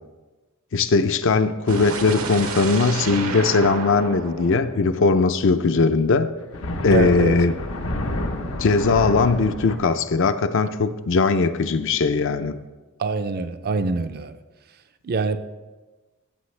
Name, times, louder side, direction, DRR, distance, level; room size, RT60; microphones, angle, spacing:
voice 1, 0.7-6.3 6.8-7.6 8.6-12.6, left 4 dB, 65° left, 0.5 m, -19 dB
sound 1, 1.7-5.7, right 3 dB, 80° right, 1.1 m, -31 dB
sound 2, 6.4-9.8, left 1 dB, 85° left, 1.0 m, -29 dB
voice 2, 6.9-7.4 13.0-14.4 15.0-15.4, right 3 dB, 50° right, 0.5 m, -24 dB
14.0 x 7.8 x 3.3 m
head